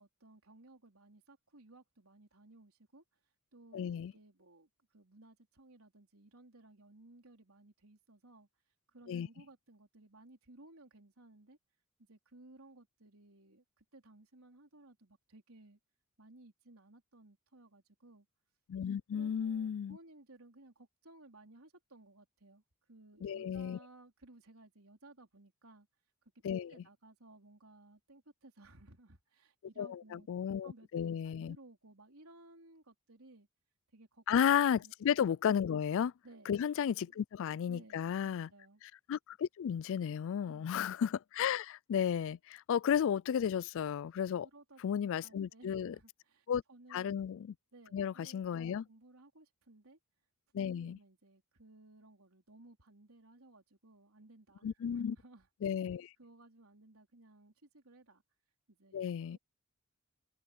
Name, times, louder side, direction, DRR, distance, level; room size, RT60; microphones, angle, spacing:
voice 1, 0.0-3.0 3.5-8.5 8.9-11.6 12.0-15.8 16.2-18.3 19.1-22.6 22.9-25.9 26.2-26.3 26.7-30.3 30.6-30.9 31.2-33.5 33.9-34.2 34.8-34.9 36.2-36.5 37.0-37.2 37.7-38.8 40.4-40.9 44.4-47.2 47.7-50.0 50.5-55.5 56.2-58.2 58.7-59.0 59.3-59.4, right 2 dB, 75° right, 4.3 m, -59 dB
voice 2, 3.7-4.1 9.1-9.3 18.7-20.0 23.2-23.8 26.4-26.7 29.8-31.6 34.3-36.1 36.5-38.5 39.1-44.5 44.8-46.0 46.5-46.6 46.9-47.5 47.9-48.8 50.5-51.0 54.6-55.2 55.6-56.1 58.9-59.4, left 8 dB, 65° left, 0.3 m, -33 dB
open air
head